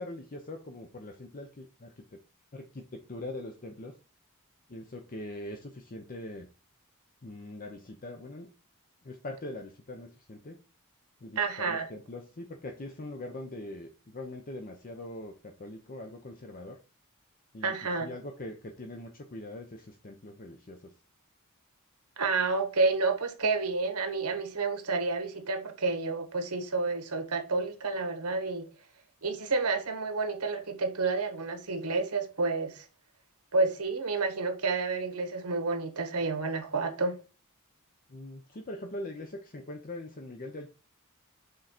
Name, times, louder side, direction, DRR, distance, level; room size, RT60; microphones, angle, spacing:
voice 1, 0.0-2.0 2.5-3.9 4.7-6.5 7.2-8.5 9.0-10.6 11.2-16.8 17.5-20.9 38.1-40.7, left 1 dB, 40° left, 0.8 m, -42 dB
voice 2, 11.4-11.9 17.6-18.1 22.2-28.7 29.2-32.8 33.5-37.2, right 3 dB, 90° right, 1.4 m, -30 dB
6.5 x 3.9 x 4.3 m
head